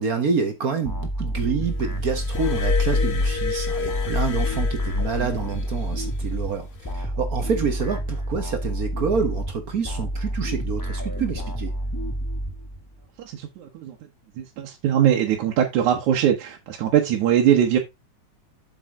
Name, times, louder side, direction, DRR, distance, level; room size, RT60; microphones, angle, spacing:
voice 1, 0.0-6.7 6.9-11.7, right 5 dB, 55° right, 1.0 m, -27 dB
sound 1, 0.8-13.0, right 1 dB, 15° left, 0.6 m, -29 dB
Glass, 2.1-5.7 6.7-6.9, left 4 dB, 75° left, 0.8 m, -26 dB
voice 2, 13.2-14.0 14.4-17.8, right 10 dB, 75° right, 2.5 m, -21 dB
8.1 x 6.8 x 3.7 m
omnidirectional pair, 3.5 m